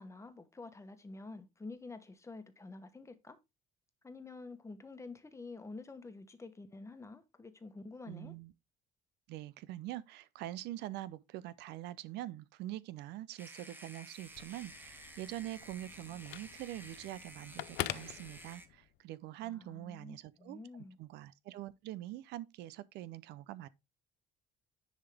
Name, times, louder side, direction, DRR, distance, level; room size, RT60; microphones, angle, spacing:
voice 1, 0.0-3.4 4.0-8.3 19.4-21.0, left 3 dB, 15° left, 1.1 m, -49 dB
voice 2, 8.1-8.5 9.3-20.6 21.0-23.7, right 14 dB, 80° right, 0.5 m, -44 dB
sound 1, 13.4-18.7, right 1 dB, 10° right, 1.0 m, -53 dB
Telephone, 14.2-19.0, left 16 dB, 80° left, 0.5 m, -45 dB
10.0 x 3.6 x 3.4 m
cardioid pair, 110°, 17 cm